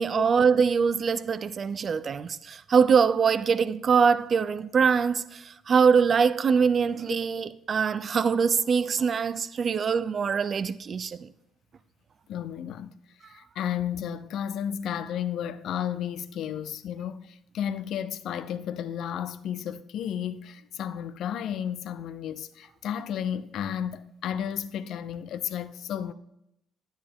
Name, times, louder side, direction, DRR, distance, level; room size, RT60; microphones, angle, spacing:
voice 1, 0.0-11.3, right 6 dB, 45° right, 0.5 m, -23 dB
voice 2, 12.3-12.9 13.3-26.1, left 9 dB, 70° left, 0.5 m, -33 dB
10.0 x 8.9 x 3.5 m
supercardioid pair, 65°, 0 cm